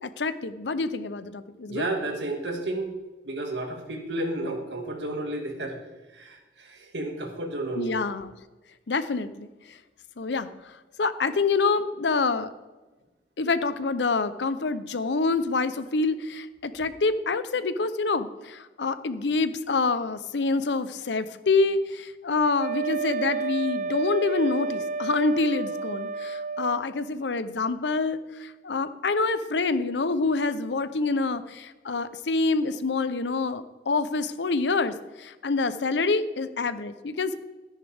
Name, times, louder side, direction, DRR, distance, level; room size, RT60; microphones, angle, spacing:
voice 1, 0.0-1.9 7.8-8.3 8.9-9.5 10.2-10.5 11.0-12.5 13.4-37.4, left 3 dB, 80° left, 13 dB, 0.7 m, -26 dB
voice 2, 1.7-2.9 3.2-5.8 6.1-8.0, right 2 dB, 80° right, 3 dB, 2.0 m, -32 dB
Wind instrument woodwind instrument, 22.6-26.8, right 4 dB, 45° right, 0.4 m, -31 dB
13.5 x 10.0 x 3.5 m, 1.2 s
head